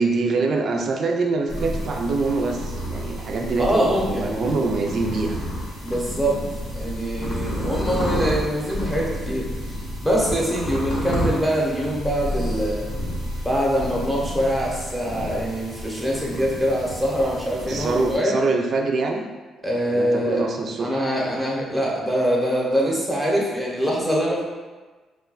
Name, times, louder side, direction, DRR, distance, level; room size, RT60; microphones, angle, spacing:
voice 1, 0.0-5.4 17.7-19.3 19.9-21.1, right 3 dB, 55° right, 2 dB, 0.3 m, -24 dB
sound 1, 1.5-18.2, equal, 85° left, 0.9 m, -30 dB
voice 2, 3.6-4.7 5.8-6.4 6.7-9.5 10.0-12.9 13.4-18.4 19.6-20.4 20.8-24.4, equal, ahead, -4 dB, 0.8 m, -24 dB
2.3 x 2.2 x 3.9 m, 1.3 s
cardioid pair, 90°, 0 cm